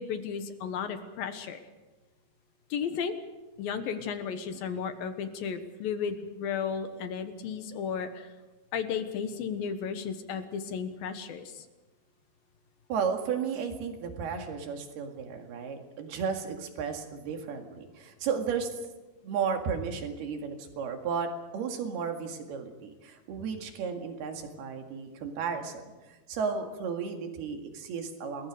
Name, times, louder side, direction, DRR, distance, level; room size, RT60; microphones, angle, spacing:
voice 1, 0.0-1.6 2.7-3.2 3.6-8.3 8.7-11.7, left 7 dB, 65° left, 8 dB, 2.7 m, -34 dB
voice 2, 12.9-18.7 19.2-25.9 26.3-28.5, right 6 dB, 65° right, 4 dB, 3.9 m, -34 dB
28.5 x 21.5 x 5.1 m, 1.1 s
omnidirectional pair, 5.0 m